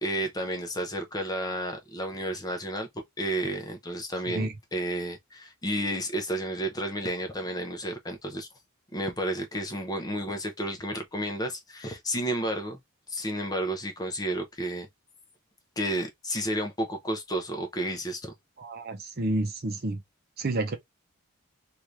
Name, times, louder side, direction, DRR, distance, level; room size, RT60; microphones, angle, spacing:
voice 1, 0.0-2.9 3.2-8.5 8.9-12.8 13.1-14.9 15.8-18.3, right 1 dB, 15° left, 0.7 m, -31 dB
voice 2, 18.6-20.0 20.4-20.8, right 2 dB, 45° right, 0.6 m, -30 dB
2.9 x 2.5 x 3.1 m
head